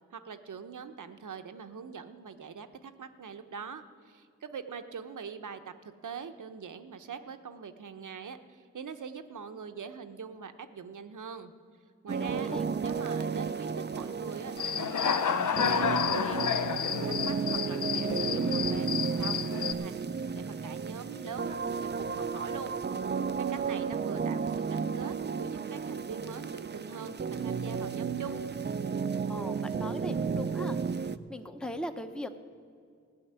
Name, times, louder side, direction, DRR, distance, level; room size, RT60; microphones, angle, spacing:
voice 1, 0.1-5.6 6.0-11.5 12.0-12.5 12.8-16.5 16.8-25.1 25.4-28.4, right 6 dB, 85° right, 8 dB, 0.8 m, -43 dB
sound 1, 12.1-31.2, right 5 dB, 35° right, 0.4 m, -33 dB
voice 2, 12.2-12.6 29.3-30.8 31.3-32.3, left 1 dB, 5° left, 7 dB, 0.7 m, -39 dB
Human voice / Cricket, 14.6-19.7, left 7 dB, 80° left, 0.5 m, -30 dB
15.5 x 6.4 x 9.6 m, 2.3 s
wide cardioid pair, 70°, 30 cm